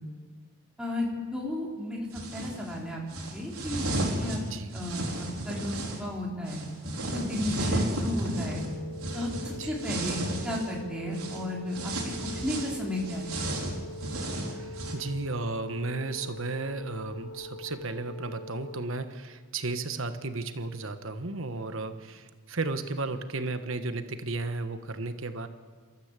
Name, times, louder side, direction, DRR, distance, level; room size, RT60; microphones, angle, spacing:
voice 1, 0.8-3.0 3.3-4.4 4.7-5.0 5.4-6.6 7.1-8.6 9.1-11.9 12.4-13.3, left 1 dB, 5° right, -3 dB, 4.3 m, -33 dB
sound 1, 2.1-2.6 3.1-6.0 6.5-10.8 11.1-11.4 11.7-14.9, right 1 dB, 85° right, 4.6 m, -33 dB
sound 2, 8.3-18.8, left 1 dB, 80° left, 2.4 m, -43 dB
voice 2, 14.5-25.5, right 3 dB, 65° right, 9 dB, 1.3 m, -34 dB
29.5 x 13.5 x 8.3 m, 1.5 s
head